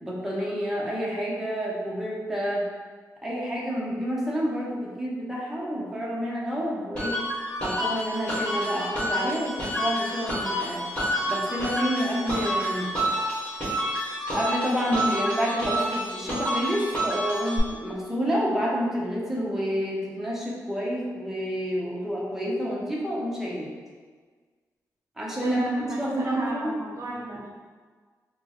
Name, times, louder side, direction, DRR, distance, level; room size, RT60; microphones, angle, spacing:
voice 1, 0.0-2.6 3.2-7.1 7.6-10.8 11.3-12.9 14.3-23.7 25.2-26.8, equal, 5° right, -5 dB, 0.6 m, -29 dB
sound 1, 7.0-17.6, equal, 15° left, 1.5 m, -29 dB
voice 2, 25.4-27.5, right 2 dB, 55° right, -3 dB, 0.6 m, -35 dB
4.3 x 2.0 x 2.9 m, 1.5 s
wide cardioid pair, 115°, 6 cm